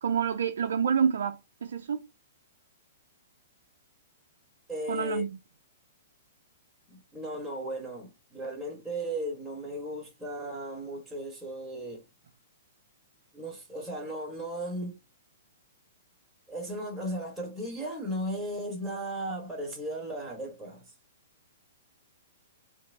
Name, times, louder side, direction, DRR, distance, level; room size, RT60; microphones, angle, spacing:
voice 1, 0.0-2.1 4.9-5.4, right 7 dB, 70° right, 0.6 m, -28 dB
voice 2, 4.7-5.2 6.9-12.0 13.3-15.0 16.5-20.9, right 1 dB, ahead, 1.9 m, -36 dB
4.5 x 2.7 x 3.7 m
hypercardioid pair, 125°, 0 cm